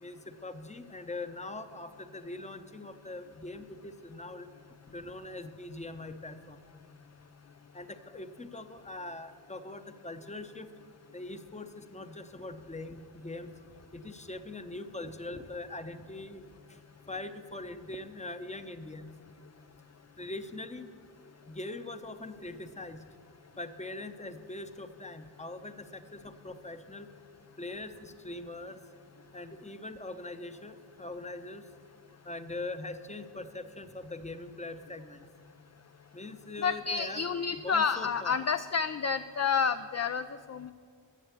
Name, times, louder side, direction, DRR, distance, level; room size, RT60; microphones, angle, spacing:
voice 1, 0.0-4.5 4.9-6.7 7.7-10.7 11.1-13.6 13.9-16.5 17.1-19.1 20.2-20.9 21.5-23.0 23.6-27.1 27.6-28.8 29.3-31.6 32.2-35.3 36.1-37.2 37.6-38.4, left 2 dB, 15° left, 9 dB, 0.7 m, -42 dB
voice 2, 36.6-40.7, left 6 dB, 40° left, 10 dB, 0.4 m, -29 dB
14.5 x 7.0 x 8.2 m, 2.3 s
wide cardioid pair, 75°, 44 cm